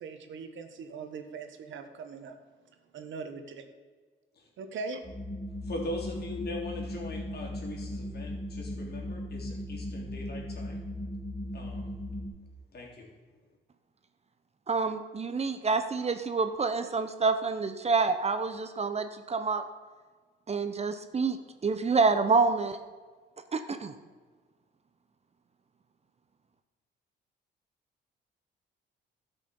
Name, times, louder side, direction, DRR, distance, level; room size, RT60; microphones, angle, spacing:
voice 1, 0.0-2.4 2.9-3.6 4.6-5.0, right 4 dB, 70° right, 7 dB, 1.4 m, -40 dB
sound 1, 5.0-12.3, left 1 dB, 30° left, 3.3 m, -37 dB
voice 2, 5.6-10.9 11.5-11.9 12.7-13.1, left 2 dB, 55° left, -1 dB, 3.4 m, -40 dB
voice 3, 14.7-19.6 20.5-21.4 21.6-22.8 23.5-23.9, right 4 dB, 30° right, 9 dB, 0.9 m, -27 dB
13.0 x 6.2 x 7.0 m, 1.4 s
cardioid pair, 90°, 20 cm